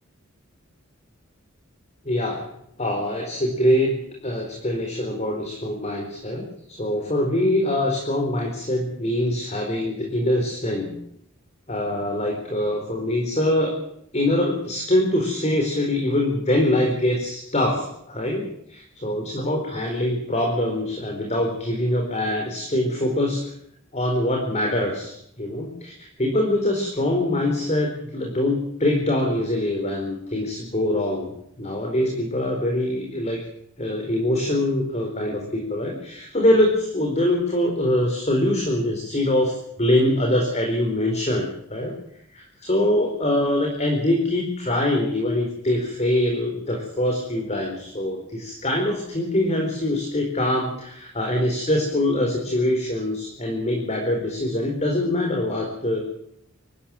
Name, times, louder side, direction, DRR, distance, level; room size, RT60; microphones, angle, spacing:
voice 1, 2.0-2.5 2.8-4.0 4.2-10.9 11.7-13.7 14.1-23.4 23.9-31.3 31.6-33.4 33.8-41.9 42.3-56.0, left 1 dB, 30° left, 2 dB, 4.4 m, -24 dB
24.0 x 14.0 x 9.0 m, 0.72 s
head